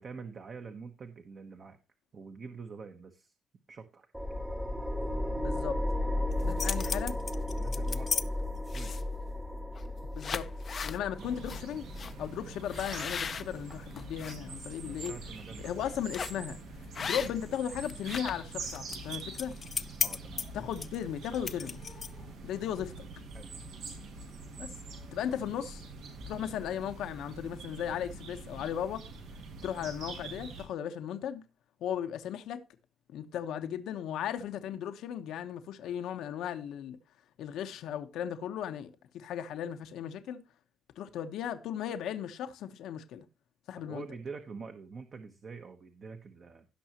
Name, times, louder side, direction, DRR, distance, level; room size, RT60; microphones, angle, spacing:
voice 1, 0.0-1.8 2.1-3.3 3.7-4.1 6.4-6.8 7.6-8.9 11.1-11.4 14.8-15.7 17.0-17.1 20.0-20.5 23.3-23.5 43.8-46.7, right 5 dB, 35° right, 1.1 m, -46 dB
sound 1, 4.1-15.2, left 1 dB, 5° right, 0.8 m, -35 dB
voice 2, 5.3-5.8 6.4-7.2 10.2-10.5 10.8-11.8 12.2-15.1 15.6-16.6 17.0-19.5 20.5-21.8 22.4-23.1 24.6-24.7 25.1-25.8 26.3-29.0 29.6-31.4 31.8-32.6 33.1-37.0 37.4-40.4 41.0-43.2 43.7-44.0, left 9 dB, 80° left, 1.1 m, -36 dB
sound 2, 6.3-8.2 8.7-9.2 9.8-9.9 10.2-11.0 11.5-11.6 12.0-12.1 12.7-14.4 14.8-15.1 16.1-16.5 16.9-17.5 17.8-22.3, left 6 dB, 35° left, 0.6 m, -36 dB
sound 3, 11.2-30.6, right 3 dB, 90° right, 4.5 m, -45 dB
17.0 x 6.2 x 2.9 m
cardioid pair, 145°, 0 cm